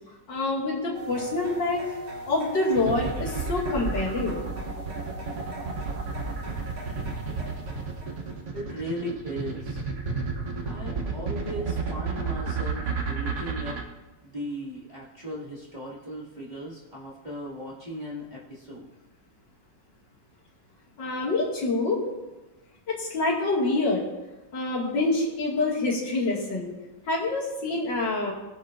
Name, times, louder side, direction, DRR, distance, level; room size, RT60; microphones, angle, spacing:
voice 1, 0.3-2.0 2.3-4.4 21.0-22.0 22.9-24.1 24.5-26.7 27.1-28.3, left 2 dB, 75° left, -4 dB, 2.9 m, -26 dB
sound 1, 0.9-8.4, right 2 dB, 70° right, 3.7 m, -41 dB
sound 2, 2.7-13.8, right 4 dB, 45° right, 1.2 m, -31 dB
voice 2, 8.5-9.8 10.7-13.8 14.2-18.9, equal, 25° right, -6 dB, 2.2 m, -37 dB
19.5 x 7.5 x 2.6 m, 1.1 s
omnidirectional pair, 2.0 m